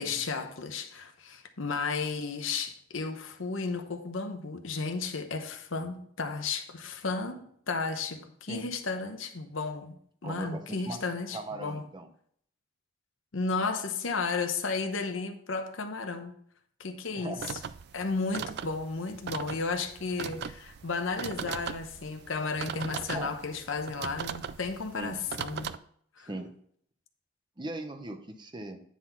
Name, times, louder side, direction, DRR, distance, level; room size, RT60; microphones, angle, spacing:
voice 1, 0.0-11.8 13.3-16.3 16.8-17.4 17.9-25.7 26.2-26.3, left 4 dB, 75° left, 0.9 m, -33 dB
voice 2, 10.2-11.0 11.3-12.1 17.2-17.5 23.1-23.3 24.9-25.2 26.2-26.5 27.6-28.8, right 2 dB, 20° right, 0.7 m, -39 dB
sound 1, 17.4-25.8, right 7 dB, 55° right, 0.3 m, -39 dB
9.5 x 4.1 x 5.7 m
head